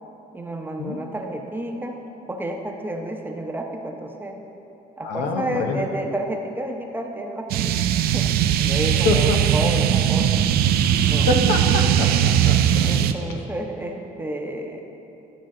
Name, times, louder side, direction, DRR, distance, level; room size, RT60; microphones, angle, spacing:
voice 1, 0.3-2.0 2.3-4.4 5.0-10.4 11.0-11.3 12.8-14.8, right 1 dB, 10° right, 2 dB, 0.7 m, -31 dB
voice 2, 5.0-5.8 9.0-9.4 11.3-13.1, left 4 dB, 90° left, 4 dB, 0.8 m, -25 dB
sound 1, 7.5-13.1, right 10 dB, 65° right, 0.4 m, -19 dB
11.5 x 5.8 x 3.7 m, 2.9 s
cardioid pair, 110°, 17 cm